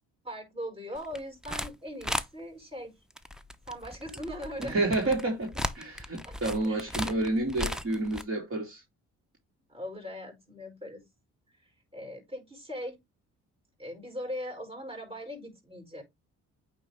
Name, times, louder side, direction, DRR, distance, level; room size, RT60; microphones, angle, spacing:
voice 1, 0.2-2.9 3.7-4.9 6.2-7.2 9.7-11.0 11.6-13.0 13.8-16.0, equal, 20° right, 5.1 m, -40 dB
sound 1, 1.0-1.7 2.0-2.3 3.1-8.2, equal, ahead, 0.7 m, -36 dB
voice 2, 4.6-8.8, right 2 dB, 45° right, 3.0 m, -29 dB
8.7 x 3.9 x 3.4 m
cardioid pair, 90°, 30 cm